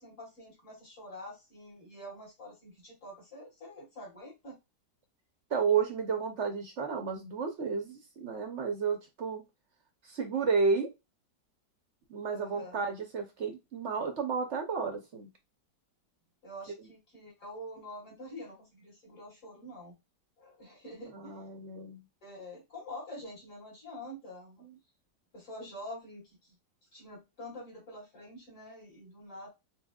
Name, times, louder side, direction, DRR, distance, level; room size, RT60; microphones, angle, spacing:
voice 1, 0.0-4.6 12.3-12.8 16.4-19.9 20.4-21.4 22.2-24.6 25.3-26.6 26.9-29.5, left 1 dB, 45° left, -6 dB, 2.6 m, -46 dB
voice 2, 5.5-9.4 10.0-10.9 12.1-15.3 21.0-22.0 24.6-24.7, right 5 dB, 55° right, 4 dB, 0.8 m, -32 dB
5.7 x 2.4 x 2.2 m, 0.24 s
omnidirectional pair, 1.9 m